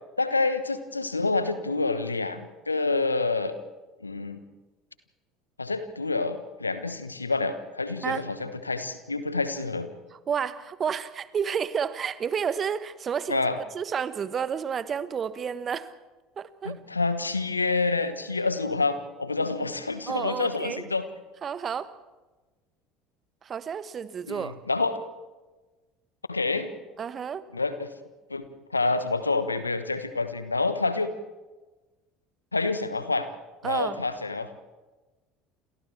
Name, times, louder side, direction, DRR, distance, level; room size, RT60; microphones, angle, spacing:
voice 1, 0.2-3.6 4.0-4.4 5.6-9.9 13.3-13.6 16.6-21.0 24.3-25.0 26.3-26.7 27.5-27.9 28.3-28.5 28.7-31.1 32.5-33.3 33.6-34.5, left 3 dB, 90° left, 11 dB, 1.2 m, -28 dB
voice 2, 10.3-13.5 13.7-15.9 16.4-16.8 20.1-20.8 21.4-21.9 23.4-24.5 27.0-27.4 33.6-34.0, right 7 dB, 35° right, 14 dB, 1.3 m, -30 dB
29.5 x 27.5 x 3.4 m, 1.2 s
figure-of-eight pair, 65°, 0 cm